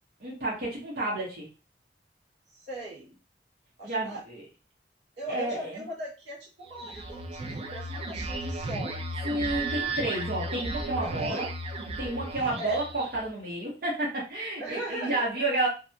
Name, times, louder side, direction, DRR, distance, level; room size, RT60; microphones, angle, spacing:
voice 1, 0.2-1.5 3.8-4.4 5.3-5.8 9.2-11.5 12.0-15.7, right 2 dB, 60° right, -5 dB, 0.8 m, -30 dB
voice 2, 2.5-3.2 3.8-4.2 5.2-9.0 11.0-11.4 12.6-12.8 14.6-15.5, right 1 dB, 85° right, -4 dB, 1.2 m, -39 dB
sound 1, 6.7-13.3, right 2 dB, 35° right, 0.3 m, -34 dB
2.5 x 2.1 x 2.6 m, 0.31 s
head